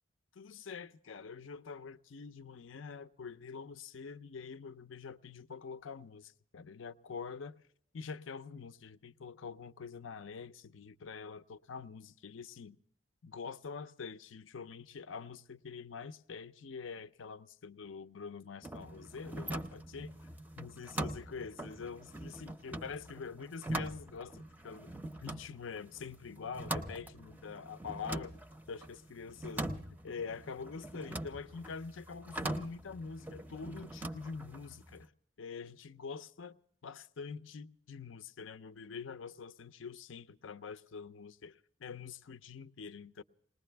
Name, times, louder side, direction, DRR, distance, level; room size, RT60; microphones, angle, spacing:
voice 1, 0.3-7.5 7.9-12.8 13.2-20.2 20.6-24.9 25.2-28.4 28.7-35.1 35.4-43.2, left 5 dB, 75° left, 0.6 m, -45 dB
sound 1, 18.6-35.0, right 1 dB, 10° right, 0.5 m, -43 dB
20.0 x 20.0 x 3.4 m
head